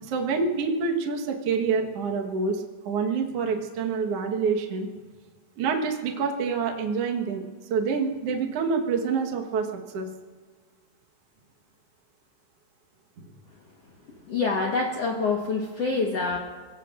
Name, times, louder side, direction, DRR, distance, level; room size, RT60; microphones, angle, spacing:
voice 1, 0.1-4.9 5.6-7.4 7.7-9.7 9.9-10.1, right 5 dB, 85° right, 2 dB, 1.3 m, -27 dB
voice 2, 14.3-16.4, left 4 dB, 85° left, -1 dB, 1.3 m, -26 dB
30.0 x 17.5 x 2.5 m, 1.5 s
omnidirectional pair, 5.0 m